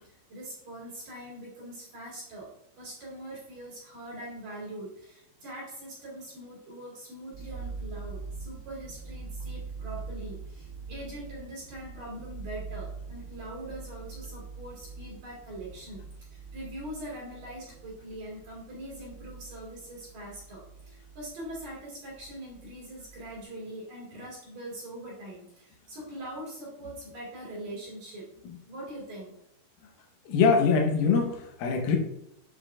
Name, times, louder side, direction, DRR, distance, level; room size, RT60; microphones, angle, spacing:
voice 1, 0.0-28.3 28.7-29.3, right 1 dB, 50° right, -7 dB, 3.2 m, -42 dB
sound 1, 7.3-23.4, right 4 dB, 80° right, 2.9 m, -43 dB
voice 2, 30.3-32.0, left 5 dB, 75° left, 1 dB, 2.2 m, -23 dB
8.0 x 7.0 x 2.4 m, 0.78 s
omnidirectional pair, 5.7 m